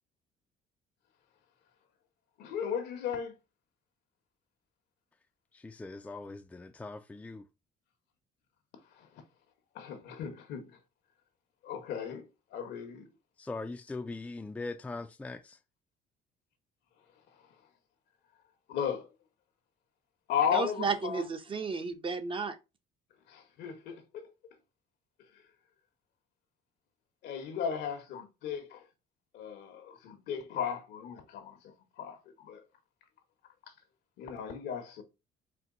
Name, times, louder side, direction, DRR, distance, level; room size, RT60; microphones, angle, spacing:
voice 1, 2.4-3.3 9.0-9.1 9.7-10.8 11.6-13.1 18.7-19.1 20.3-21.3 23.3-24.3 25.3-25.4 27.2-28.8 29.3-32.6 34.2-35.0, left 8 dB, 80° left, 1.1 m, -36 dB
voice 2, 5.5-7.4 13.4-15.6, left 3 dB, 10° left, 0.4 m, -41 dB
voice 3, 20.5-22.6, right 4 dB, 30° right, 0.6 m, -33 dB
4.4 x 2.2 x 3.8 m
cardioid pair, 110°, 17 cm